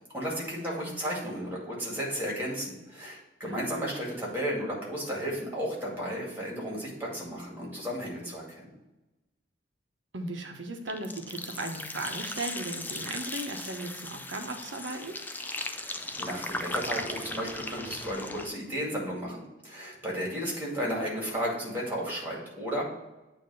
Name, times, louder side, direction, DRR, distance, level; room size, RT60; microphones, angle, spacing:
voice 1, 0.1-8.7 15.7-22.8, equal, 10° right, -4 dB, 2.1 m, -34 dB
voice 2, 10.1-15.1, right 2 dB, 85° right, 4 dB, 1.0 m, -37 dB
sound 1, 10.9-18.5, left 2 dB, 10° left, 0.3 m, -37 dB
8.7 x 2.9 x 5.5 m, 1.0 s
head